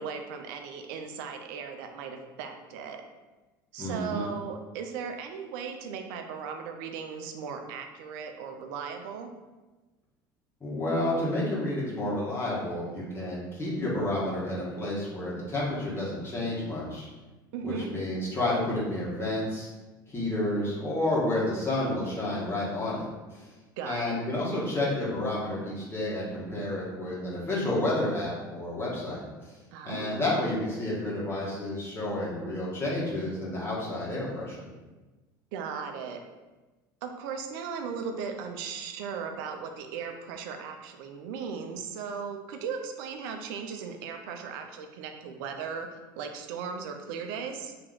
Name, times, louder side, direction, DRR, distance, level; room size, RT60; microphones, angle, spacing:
voice 1, 0.0-3.0 3.7-9.3 17.5-17.9 23.8-24.1 29.7-30.5 35.5-36.2 37.0-47.7, right 6 dB, 75° right, 5 dB, 0.5 m, -37 dB
voice 2, 3.8-4.3 10.6-17.1 17.6-19.7 20.1-23.0 23.3-23.5 23.8-29.6 29.8-34.7, left 1 dB, 20° left, -7 dB, 1.4 m, -30 dB
2.9 x 2.9 x 3.9 m, 1.2 s
hypercardioid pair, 75°, 11 cm